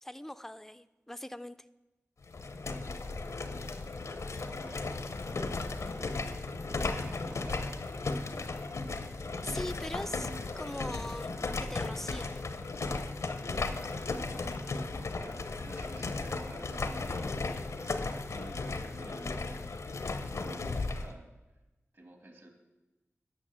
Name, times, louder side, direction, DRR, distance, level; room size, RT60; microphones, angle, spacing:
voice 1, 0.0-1.6 9.4-10.3 10.6-12.4, left 1 dB, 5° left, 13 dB, 0.3 m, -41 dB
sound 1, 2.2-21.1, left 3 dB, 80° left, 0.7 m, -36 dB
voice 2, 3.3-3.9 4.4-5.0 5.3-6.1 6.6-7.8 10.1-10.4 14.2-19.8 20.3-21.3 21.9-22.5, right 1 dB, 55° right, 4 dB, 1.9 m, -51 dB
8.8 x 6.2 x 7.4 m, 1.1 s
wide cardioid pair, 80°, 5 cm